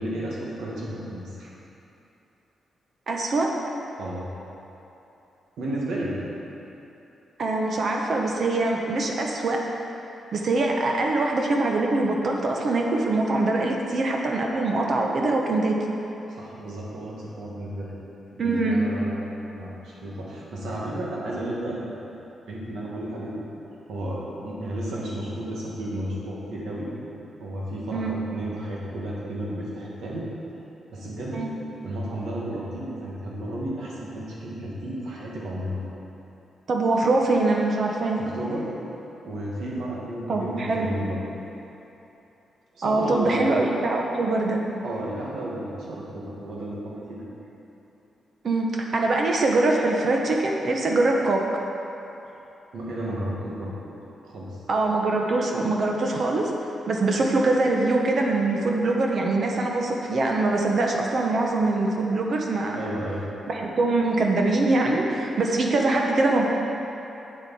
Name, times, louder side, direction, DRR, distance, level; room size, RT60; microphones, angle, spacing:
voice 1, 0.0-1.5 4.0-4.2 5.6-6.1 16.3-17.9 18.4-19.2 19.5-21.9 22.5-23.4 23.9-26.9 27.4-30.3 30.9-31.5 31.8-35.8 38.2-38.7 39.2-41.2 42.7-43.5 44.8-47.3 52.7-53.7 54.2-54.6 62.7-63.3, right 1 dB, 80° right, -5 dB, 1.9 m, -32 dB
voice 2, 3.1-3.5 7.4-9.6 10.3-15.8 18.4-18.9 27.9-28.2 31.3-31.5 36.7-38.2 40.3-40.9 42.8-44.6 48.4-51.4 54.7-56.5 56.9-62.8 63.5-66.5, right 2 dB, 45° right, 0 dB, 0.8 m, -23 dB
8.3 x 7.8 x 4.2 m, 3.0 s
wide cardioid pair, 145°, 0 cm